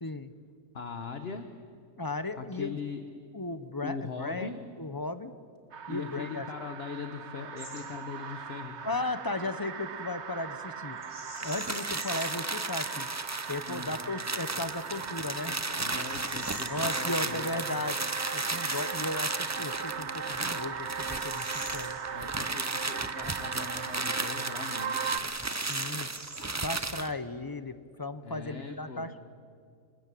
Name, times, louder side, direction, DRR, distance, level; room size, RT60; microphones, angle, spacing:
voice 1, 0.0-0.3 2.0-2.8 3.3-4.5 4.8-5.3 5.9-6.5 8.8-11.0 11.4-13.1 13.5-15.6 16.7-18.0 18.3-22.0 25.7-26.1 26.6-29.2, left 2 dB, 20° left, 12 dB, 0.8 m, -35 dB
voice 2, 0.7-1.5 2.4-3.0 3.8-4.6 5.9-8.9 13.6-14.0 15.7-17.8 22.1-25.3 28.2-29.2, left 5 dB, 50° left, 7 dB, 1.3 m, -40 dB
sound 1, 5.7-25.2, right 6 dB, 55° right, 1.2 m, -39 dB
Bird vocalization bird call bird song, 7.6-7.9 8.2-8.4 11.0-12.5 13.0-13.1 13.7-14.1 14.7-14.8 15.4-17.3 19.4-19.5 20.1-22.6 22.9-23.0 23.7-24.5 24.7-24.8 25.1-27.2, right 1 dB, 90° right, 5.2 m, -47 dB
sound 2, 11.3-27.1, right 3 dB, 20° right, 0.5 m, -35 dB
26.0 x 21.0 x 8.5 m, 2.2 s
omnidirectional pair, 1.5 m